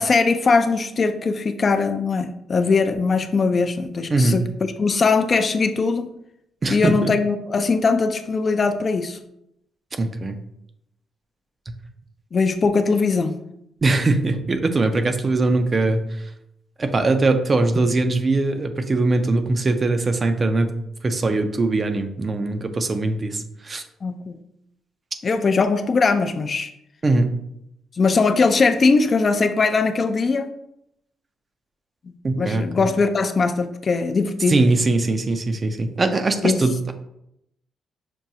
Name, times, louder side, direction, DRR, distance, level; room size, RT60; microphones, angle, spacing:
voice 1, 0.0-6.1 6.7-9.2 12.3-13.4 24.0-24.4 25.2-26.7 27.9-30.5 32.1-34.6 36.4-36.6, left 4 dB, 40° left, 8 dB, 0.3 m, -20 dB
voice 2, 4.1-4.4 6.6-7.1 10.0-10.4 13.8-16.1 16.8-20.7 21.0-23.8 27.0-27.3 32.2-32.9 34.5-36.9, right 2 dB, 35° right, 8 dB, 0.4 m, -21 dB
6.0 x 2.2 x 2.7 m, 0.78 s
cardioid pair, 90°, 0 cm